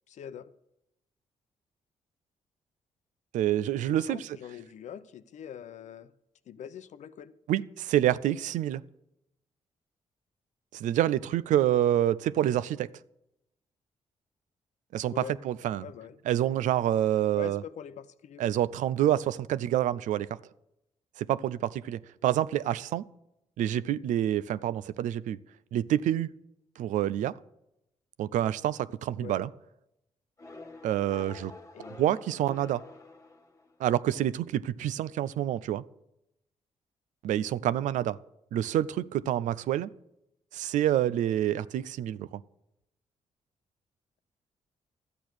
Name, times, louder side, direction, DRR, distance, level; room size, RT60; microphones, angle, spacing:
voice 1, 0.1-0.5 3.9-6.1 6.5-7.4 15.1-15.4 15.8-16.2 17.3-18.5 29.2-29.4 31.7-32.1, left 9 dB, 70° left, 0.7 m, -43 dB
voice 2, 3.3-4.4 7.5-8.8 10.7-12.9 14.9-15.9 16.3-17.6 18.4-20.3 21.2-23.0 23.6-25.4 25.7-26.3 26.8-27.3 28.2-29.5 30.8-31.5 32.0-32.8 33.8-35.8 37.2-38.2 38.5-39.9 40.5-42.4, right 12 dB, 80° right, 0.5 m, -27 dB
sound 1, 30.4-33.9, left 2 dB, 25° left, 1.4 m, -48 dB
12.5 x 8.4 x 6.2 m
cardioid pair, 70°, 13 cm